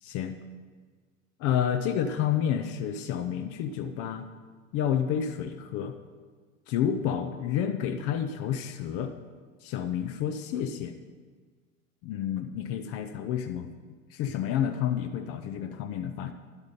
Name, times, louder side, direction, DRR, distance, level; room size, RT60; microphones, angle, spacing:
voice 1, 0.0-0.3 1.4-4.3 4.7-6.0 6.7-9.1 9.6-10.9 12.0-13.7 14.1-16.3, left 9 dB, 35° left, 8 dB, 0.6 m, -29 dB
11.0 x 8.0 x 5.3 m, 1.5 s
figure-of-eight pair, 85°, 40 cm